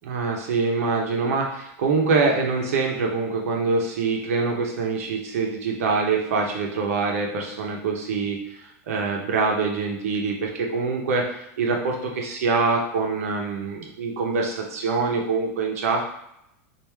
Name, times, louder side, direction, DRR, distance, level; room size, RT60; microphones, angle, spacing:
voice 1, 0.0-16.1, right 4 dB, 70° right, 0 dB, 0.8 m, -25 dB
3.1 x 2.6 x 3.5 m, 0.80 s
supercardioid pair, 180°, 8 cm